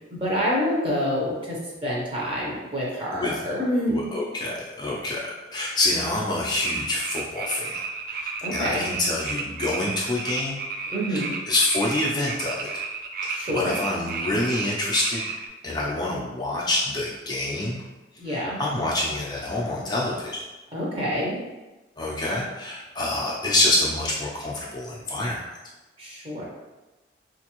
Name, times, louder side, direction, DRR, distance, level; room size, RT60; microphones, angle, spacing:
voice 1, 0.1-4.1 8.4-8.8 10.9-11.3 13.3-13.7 18.2-18.6 20.7-21.4 26.0-26.4, equal, 30° right, -4 dB, 0.8 m, -27 dB
voice 2, 3.1-3.5 3.9-5.2 5.5-7.8 8.1-10.6 11.1-11.2 11.5-12.6 13.2-15.2 15.6-17.8 18.3-20.4 22.0-25.4, left 2 dB, 25° left, -5 dB, 0.4 m, -26 dB
sound 1, 6.6-15.5, right 4 dB, 50° right, 0.3 m, -32 dB
3.9 x 2.5 x 2.9 m, 1.1 s
head